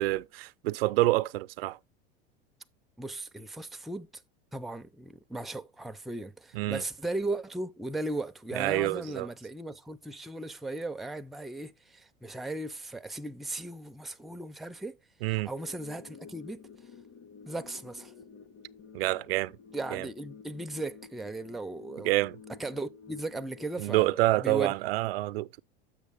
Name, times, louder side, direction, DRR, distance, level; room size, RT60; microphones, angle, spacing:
voice 1, 0.0-1.8 6.5-6.8 8.5-9.3 15.2-15.5 18.9-19.5 19.9-20.1 22.0-22.4 23.8-25.5, right 18 dB, 90° right, 0.5 m, -27 dB
voice 2, 3.0-4.2 4.5-15.0 15.3-16.6 17.5-18.1 19.7-22.1 22.6-24.7, right 2 dB, ahead, 0.4 m, -37 dB
sound 1, 15.6-24.6, left 6 dB, 40° left, 1.1 m, -51 dB
7.3 x 6.3 x 3.4 m
supercardioid pair, 115°, 29 cm